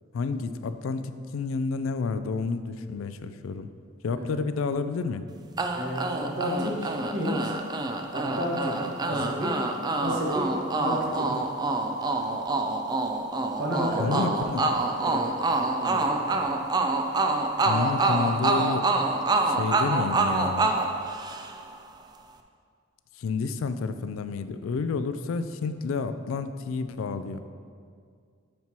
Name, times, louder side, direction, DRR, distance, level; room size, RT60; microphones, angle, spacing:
voice 1, 0.1-3.7 4.0-5.2 9.1-9.2 14.0-14.7 17.6-18.8 19.4-20.7 23.2-27.5, left 4 dB, 90° left, 11 dB, 0.3 m, -30 dB
sound 1, 5.6-21.8, right 2 dB, 20° right, 0.3 m, -27 dB
voice 2, 5.7-7.5 8.1-9.7 10.0-10.4 10.8-11.4 13.6-14.3 15.0-15.2 15.8-16.1, equal, 65° right, -4 dB, 1.5 m, -31 dB
9.3 x 4.4 x 2.9 m, 2.2 s
head